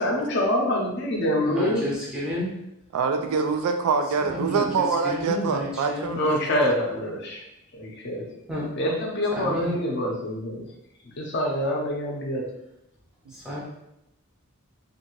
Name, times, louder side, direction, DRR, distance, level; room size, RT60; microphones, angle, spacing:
voice 1, 0.0-1.8 6.2-7.4 7.7-8.2 8.8-10.7 11.2-12.4, left 1 dB, 50° left, -1 dB, 0.6 m, -25 dB
voice 2, 1.4-2.5 4.3-4.6 5.1-6.2 8.5-8.7 9.3-9.8 13.3-13.6, left 1 dB, 5° right, -6 dB, 0.5 m, -30 dB
voice 3, 2.9-6.4, right 5 dB, 80° right, 6 dB, 0.3 m, -25 dB
2.7 x 2.5 x 2.9 m, 0.85 s
head